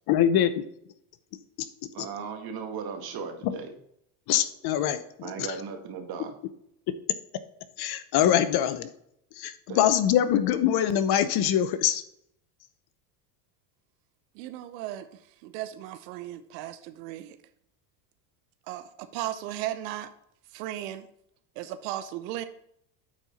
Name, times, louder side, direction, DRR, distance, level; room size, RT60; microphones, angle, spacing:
voice 1, 0.1-0.6 1.6-1.7 3.4-3.5 4.3-5.0 5.4-5.5 7.8-8.9 9.4-12.0, left 10 dB, 50° left, 12 dB, 0.8 m, -23 dB
voice 2, 1.9-3.7 5.2-6.3 9.7-9.8, right 6 dB, 50° right, 4 dB, 1.8 m, -36 dB
voice 3, 14.3-15.1 15.4-17.4 18.7-20.1 20.5-21.1 21.6-22.4, right 13 dB, 75° right, 11 dB, 0.8 m, -36 dB
9.0 x 4.5 x 4.1 m, 0.73 s
supercardioid pair, 110°, 49 cm